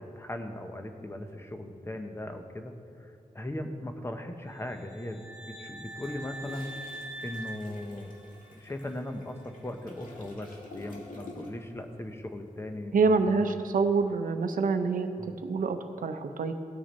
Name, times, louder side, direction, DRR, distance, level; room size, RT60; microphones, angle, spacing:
voice 1, 0.0-2.7 3.0-6.7 7.2-8.1 8.5-13.4 15.2-15.3, left 1 dB, 15° left, 5 dB, 0.7 m, -38 dB
sound 1, 4.6-8.6, right 2 dB, 10° right, 1.2 m, -44 dB
Toilet flush, 5.8-11.8 12.1-12.3, left 2 dB, 70° left, 1.8 m, -49 dB
voice 2, 12.9-15.1 15.4-16.5, right 4 dB, 75° right, 8 dB, 0.7 m, -26 dB
16.0 x 6.3 x 4.2 m, 2.5 s
wide cardioid pair, 130°, 14 cm